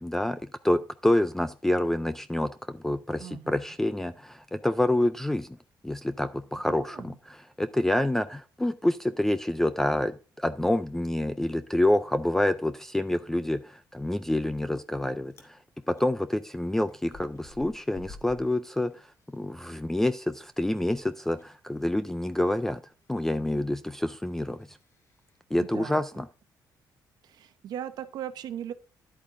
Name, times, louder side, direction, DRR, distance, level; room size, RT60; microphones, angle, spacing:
voice 1, 0.0-5.5 5.8-15.6 15.9-19.1 19.3-22.8 23.1-24.8 25.5-26.3, left 1 dB, 5° left, 12 dB, 0.4 m, -27 dB
voice 2, 3.2-3.7 6.7-7.2 25.6-26.2 27.2-28.7, right 10 dB, 70° right, 9 dB, 0.9 m, -39 dB
Chewing mastication, 14.5-15.0 15.2-15.5 15.9-19.7 20.0-25.4, left 3 dB, 40° left, 2.2 m, -54 dB
11.0 x 8.5 x 2.6 m, 0.35 s
cardioid pair, 165°, 7 cm